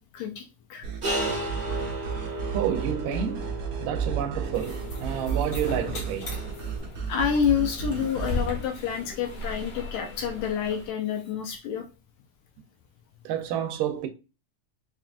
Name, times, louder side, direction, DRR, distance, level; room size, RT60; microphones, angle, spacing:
sound 1, 0.8-8.5, right 7 dB, 65° right, 2.0 m, -33 dB
sound 2, 1.0-6.8, right 1 dB, 40° right, 1.0 m, -35 dB
voice 1, 1.2-1.6 2.5-6.5 13.3-14.1, right 9 dB, 90° right, 2.3 m, -30 dB
sound 3, 4.5-10.9, left 3 dB, 55° left, 1.4 m, -37 dB
voice 2, 7.1-11.9, left 7 dB, 75° left, 1.8 m, -28 dB
5.9 x 2.4 x 2.4 m
omnidirectional pair, 3.7 m